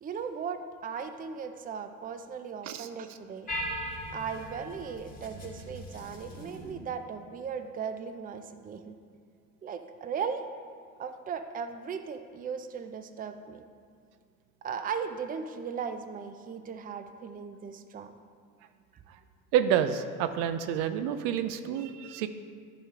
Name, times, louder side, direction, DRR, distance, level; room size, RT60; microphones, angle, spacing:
voice 1, 0.0-3.5 4.1-9.0 9.6-10.4 11.0-13.6 14.6-18.1, right 6 dB, 20° right, 8 dB, 0.5 m, -37 dB
sound 1, 3.5-6.7, equal, 20° left, 2.2 m, -39 dB
voice 2, 19.5-22.3, right 9 dB, 65° right, 10 dB, 0.6 m, -28 dB
10.5 x 5.1 x 3.7 m, 2.1 s
hypercardioid pair, 70°, 44 cm